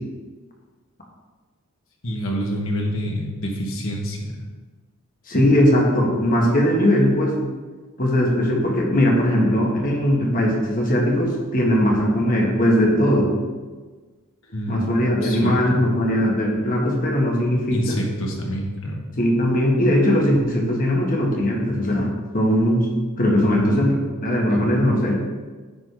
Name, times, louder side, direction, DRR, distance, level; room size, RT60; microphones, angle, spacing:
voice 1, 2.0-4.4 14.5-14.9 15.2-15.8 17.7-19.0 23.5-23.9, equal, 70° left, -1 dB, 1.6 m, -27 dB
voice 2, 5.3-7.4 8.0-13.3 14.7-18.0 19.2-22.9 23.2-25.2, equal, 40° left, -1 dB, 1.5 m, -19 dB
9.5 x 4.1 x 4.8 m, 1.4 s
head